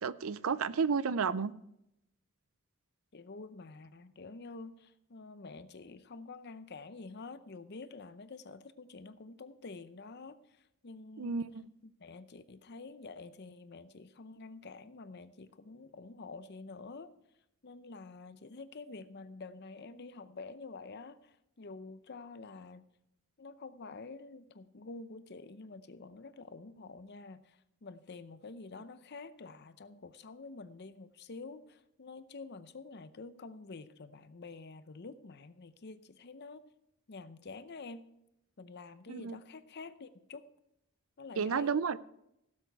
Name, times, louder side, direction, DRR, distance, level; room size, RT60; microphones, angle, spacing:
voice 1, 0.0-1.5 11.2-11.7 39.1-39.4 41.4-42.0, right 5 dB, 70° right, 0.5 m, -32 dB
voice 2, 3.1-11.4 11.8-17.1 17.6-22.9 23.4-36.6 37.1-38.0 38.6-40.5 41.2-41.8, left 3 dB, 50° left, 0.7 m, -48 dB
17.0 x 7.6 x 4.6 m
head